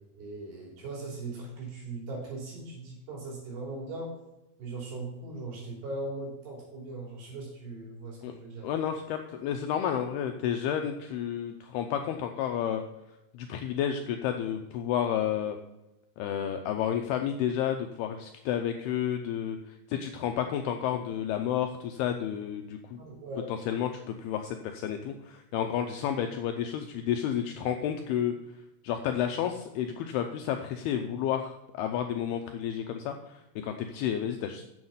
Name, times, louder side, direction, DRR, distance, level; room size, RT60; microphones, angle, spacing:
voice 1, 0.2-4.1 4.6-8.7 23.0-23.5, right 2 dB, 65° right, -2 dB, 5.2 m, -39 dB
voice 2, 8.6-12.8 13.3-15.6 16.2-23.0 23.7-28.3 28.8-34.7, left 9 dB, 85° left, 5 dB, 2.3 m, -31 dB
7.9 x 7.2 x 5.6 m, 0.91 s
omnidirectional pair, 5.1 m